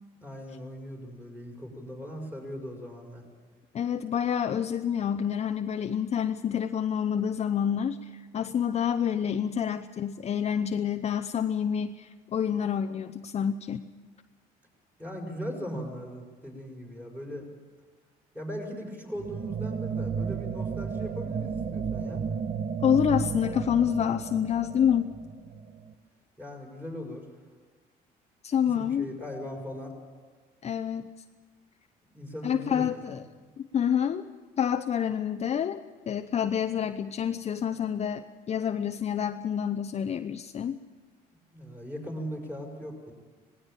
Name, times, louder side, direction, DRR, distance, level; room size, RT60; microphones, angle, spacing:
voice 1, 0.2-3.2 15.0-17.4 18.3-22.3 26.4-27.2 28.6-29.9 32.1-33.2 41.5-43.1, equal, 10° right, 1 dB, 5.9 m, -39 dB
voice 2, 3.7-13.8 22.8-25.2 28.4-29.1 30.6-31.1 32.4-33.2 33.6-34.2 34.6-35.8 36.1-40.8, left 8 dB, 40° left, 8 dB, 0.7 m, -28 dB
sound 1, 19.2-25.9, right 6 dB, 45° right, 1.2 m, -33 dB
19.0 x 16.5 x 9.0 m, 1.4 s
cardioid pair, 110°, 17 cm